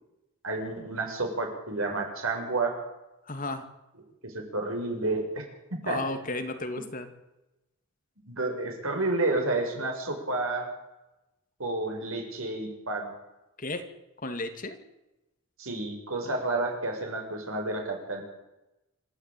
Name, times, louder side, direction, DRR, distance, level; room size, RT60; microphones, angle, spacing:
voice 1, 0.4-2.7 4.2-5.4 5.8-6.0 8.3-10.7 11.6-13.1 15.6-18.2, right 2 dB, 70° right, 2 dB, 6.8 m, -30 dB
voice 2, 3.3-3.7 5.8-7.1 13.6-13.8 14.2-14.8, left 2 dB, 40° left, 7 dB, 2.4 m, -33 dB
27.0 x 13.5 x 9.2 m, 0.96 s
head